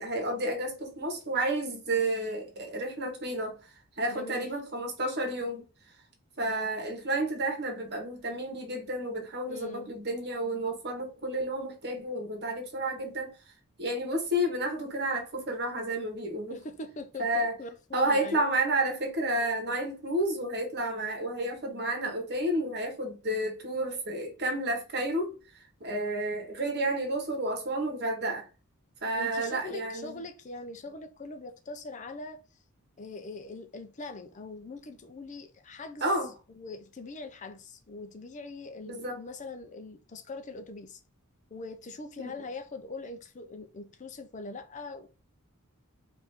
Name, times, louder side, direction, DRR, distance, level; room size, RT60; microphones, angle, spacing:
voice 1, 0.0-3.6 4.0-5.6 6.4-13.3 13.8-16.6 17.2-17.6 17.9-28.4 29.0-30.2 36.0-36.3 38.9-39.2 42.2-42.3, right 1 dB, 50° right, 1.4 m, -31 dB
voice 2, 4.1-4.5 9.5-9.9 16.5-18.4 29.1-32.4 33.0-36.1 36.5-41.0 41.5-45.1, left 3 dB, 35° left, 0.5 m, -42 dB
4.9 x 2.6 x 3.4 m
head